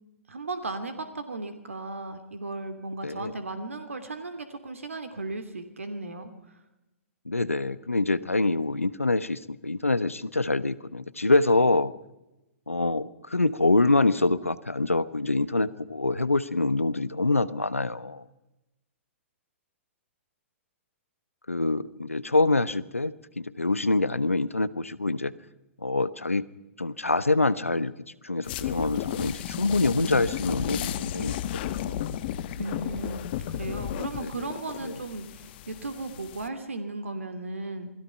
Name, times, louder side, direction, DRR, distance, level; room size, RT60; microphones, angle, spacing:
voice 1, 0.3-6.6 32.6-37.9, right 2 dB, 80° right, 10 dB, 2.7 m, -36 dB
voice 2, 3.0-3.3 7.2-11.9 12.7-18.2 21.5-25.3 25.8-26.5 26.8-27.9 28.2-31.4 31.6-32.1 34.2-34.5 34.8-35.0, left 2 dB, 90° left, 17 dB, 1.1 m, -25 dB
sound 1, 28.4-36.5, left 11 dB, 50° left, 1.5 m, -34 dB
28.0 x 21.0 x 5.8 m, 0.97 s
figure-of-eight pair, 115°, 7 cm